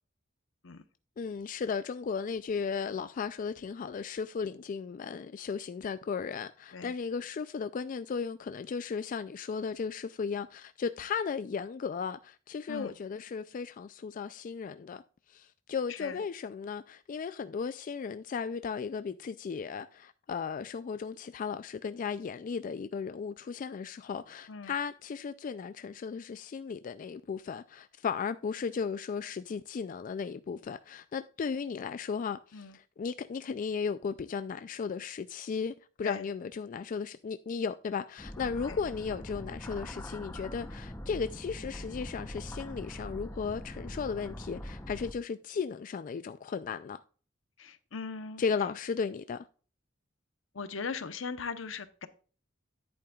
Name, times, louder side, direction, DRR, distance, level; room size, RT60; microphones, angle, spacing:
voice 1, 1.2-15.0 15.3-47.0 48.4-49.4, left 5 dB, 40° left, 0.3 m, -35 dB
voice 2, 15.9-16.2 24.5-24.7 32.5-32.8 36.0-36.3 38.7-38.8 47.6-48.4 50.5-52.1, left 5 dB, 75° left, 0.8 m, -39 dB
sound 1, 38.2-45.1, equal, 15° left, 0.7 m, -42 dB
10.5 x 8.7 x 2.3 m
head